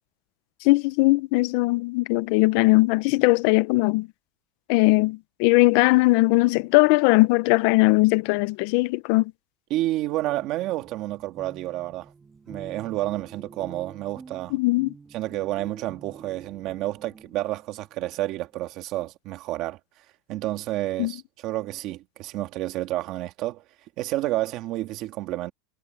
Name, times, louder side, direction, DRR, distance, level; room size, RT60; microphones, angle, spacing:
voice 1, 0.6-4.1 4.7-9.3 14.5-14.9 21.0-21.1, left 23 dB, 45° left, 0.5 m, -20 dB
voice 2, 9.7-12.1 12.5-14.6 15.1-19.8 20.3-23.6 24.0-25.5, right 16 dB, 35° right, 2.2 m, -30 dB
sound 1, 10.1-17.7, right 4 dB, 10° right, 5.5 m, -47 dB
supercardioid pair, 180°, 0 cm